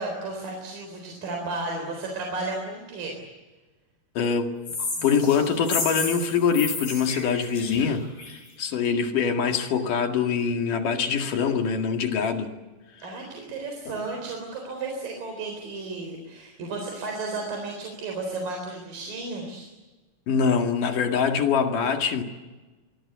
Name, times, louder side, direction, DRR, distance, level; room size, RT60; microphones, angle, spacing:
voice 1, 0.0-3.2 13.0-19.7, right 3 dB, 75° right, 2 dB, 5.7 m, -33 dB
voice 2, 4.2-4.5 4.8-12.5 13.9-14.0 20.3-22.2, left 6 dB, 65° left, 4 dB, 3.6 m, -24 dB
sound 1, 4.7-8.5, left 3 dB, 85° left, 8.8 m, -32 dB
26.0 x 23.5 x 8.3 m, 1.2 s
omnidirectional pair, 4.0 m